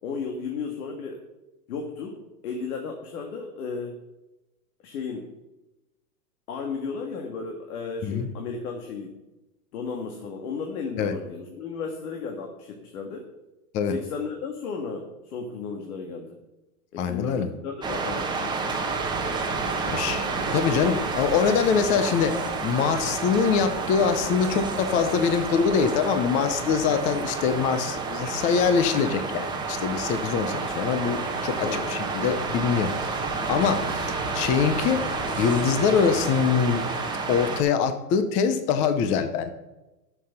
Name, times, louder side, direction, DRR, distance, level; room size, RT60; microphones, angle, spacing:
voice 1, 0.0-1.2 1.7-4.0 4.8-5.3 6.5-9.2 9.7-13.2 13.9-16.4 16.9-18.8 31.6-31.9, left 5 dB, 65° left, 3 dB, 1.8 m, -34 dB
voice 2, 17.0-17.5 19.9-20.3 20.5-22.4 22.6-36.8 37.3-39.5, left 6 dB, 15° left, 9 dB, 0.4 m, -24 dB
sound 1, 17.8-37.6, right 4 dB, 10° right, 1.1 m, -30 dB
sound 2, 30.5-37.2, left 2 dB, 50° left, 4.5 m, -40 dB
12.0 x 6.8 x 5.7 m, 1.0 s
supercardioid pair, 145°, 46 cm